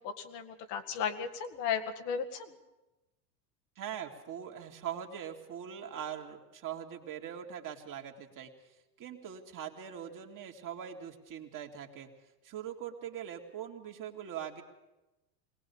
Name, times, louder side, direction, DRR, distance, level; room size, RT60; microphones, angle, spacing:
voice 1, 0.0-2.6, left 7 dB, 65° left, 6 dB, 2.1 m, -35 dB
voice 2, 3.8-8.5 9.0-12.1 12.4-14.6, right 9 dB, 40° right, 2 dB, 2.6 m, -42 dB
21.5 x 18.5 x 7.2 m, 1.0 s
hypercardioid pair, 95°, 50 cm